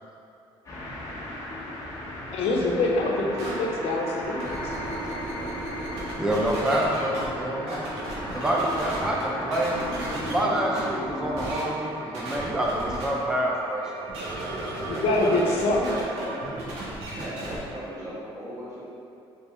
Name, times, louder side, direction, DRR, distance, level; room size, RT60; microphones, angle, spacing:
sound 1, 0.6-11.5, left 1 dB, 30° left, 1.0 m, -36 dB
voice 1, 2.3-4.7 14.9-15.9, left 2 dB, 75° left, -1 dB, 0.7 m, -25 dB
sound 2, 3.3-16.6, right 4 dB, 65° right, 0.4 m, -41 dB
sound 3, 3.4-3.5 4.2-7.3 7.7-9.2 9.5-10.4 10.7-10.8 11.4-11.6 12.1-13.0 14.1-17.6, right 1 dB, 85° right, 1.2 m, -35 dB
voice 2, 6.2-7.9 8.3-9.8 10.2-13.9, right 1 dB, 5° right, -3 dB, 0.5 m, -27 dB
voice 3, 14.8-16.4 17.1-18.8, equal, 30° right, -10 dB, 1.4 m, -37 dB
4.2 x 3.2 x 3.5 m, 2.7 s
cardioid pair, 135°, 10 cm